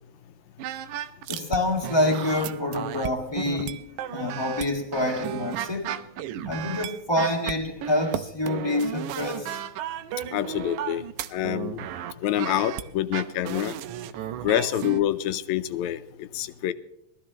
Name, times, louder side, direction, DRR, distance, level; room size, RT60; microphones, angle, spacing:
sound 1, 0.6-1.6 1.8-15.0, right 11 dB, 85° right, 2.1 m, -34 dB
voice 1, 1.3-3.8 4.1-5.9 6.4-9.6, left 1 dB, 15° left, 1.2 m, -27 dB
voice 2, 10.3-11.1 11.3-11.9 12.2-13.8 14.4-16.7, left 12 dB, 80° left, 2.0 m, -27 dB
21.5 x 14.0 x 3.0 m
omnidirectional pair, 3.4 m